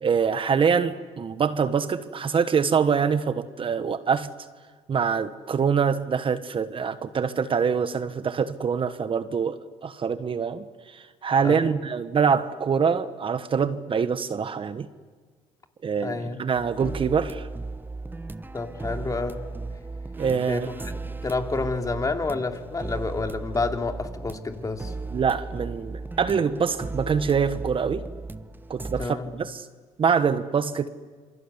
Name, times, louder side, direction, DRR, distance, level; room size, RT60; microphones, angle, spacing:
voice 1, 0.0-4.3 4.9-14.9 15.8-17.5 20.2-20.7 25.1-28.0 28.7-29.7 30.0-30.9, right 6 dB, 40° right, 12 dB, 1.3 m, -25 dB
voice 2, 11.4-11.8 16.0-16.4 18.5-19.4 20.5-20.9 21.2-24.9 29.0-29.3, left 3 dB, 25° left, 4 dB, 2.9 m, -29 dB
sound 1, 16.5-29.1, right 3 dB, 15° right, 1.0 m, -36 dB
27.5 x 23.5 x 8.3 m, 1.5 s
supercardioid pair, 70°, 14 cm